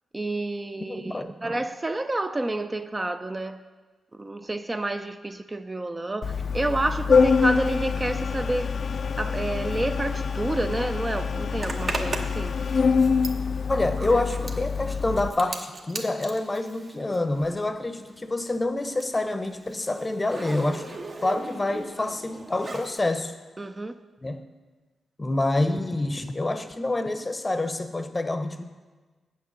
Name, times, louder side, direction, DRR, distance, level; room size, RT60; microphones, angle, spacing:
voice 1, 0.1-3.6 4.1-8.7 9.2-12.6 14.0-14.2 22.0-22.1 23.6-23.9, right 2 dB, 25° right, 0.4 m, -29 dB
voice 2, 0.9-1.3 13.7-23.3 24.2-24.4 25.2-28.6, left 2 dB, 25° left, 0.7 m, -27 dB
Organ, 6.2-15.3, left 5 dB, 60° left, 0.4 m, -25 dB
Zipper (clothing), 11.6-17.8 18.0-23.0, right 2 dB, 45° right, 1.0 m, -38 dB
8.6 x 6.3 x 6.8 m
cardioid pair, 75°, 0 cm